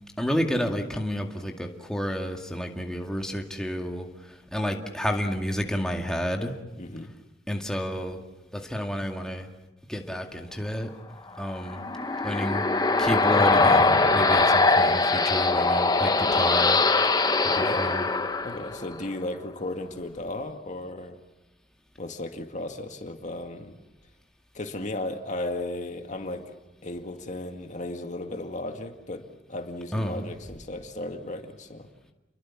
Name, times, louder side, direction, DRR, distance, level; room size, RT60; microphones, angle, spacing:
voice 1, 0.2-6.6 7.5-8.2 8.5-9.5 9.9-10.9 11.4-11.8 12.2-12.7 13.0-16.8 17.5-18.1 29.9-30.3, equal, 5° left, 2 dB, 2.1 m, -30 dB
voice 2, 6.8-7.1 17.6-17.8 18.4-21.2 22.0-23.8 24.5-26.4 26.8-31.9, left 2 dB, 40° left, 5 dB, 2.0 m, -35 dB
sound 1, 11.5-19.1, left 3 dB, 20° left, 1.1 m, -22 dB
29.5 x 22.5 x 7.4 m, 0.99 s
head